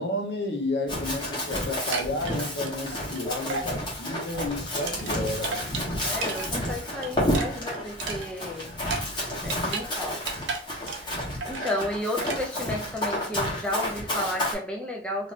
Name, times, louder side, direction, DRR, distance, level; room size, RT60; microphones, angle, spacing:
voice 1, 0.0-5.7, left 1 dB, 65° left, 0.7 m, -31 dB
Run, 0.9-14.5, left 1 dB, 25° left, 1.0 m, -31 dB
sound 1, 1.7-3.2 3.5-3.7 4.0-6.5 6.8-9.9 10.1-11.1 11.4-11.8 12.2-12.4, right 4 dB, 80° right, 0.7 m, -34 dB
voice 2, 6.1-8.7 9.4-10.3 11.4-15.3, left 1 dB, 5° left, 0.4 m, -32 dB
3.2 x 2.5 x 2.4 m
head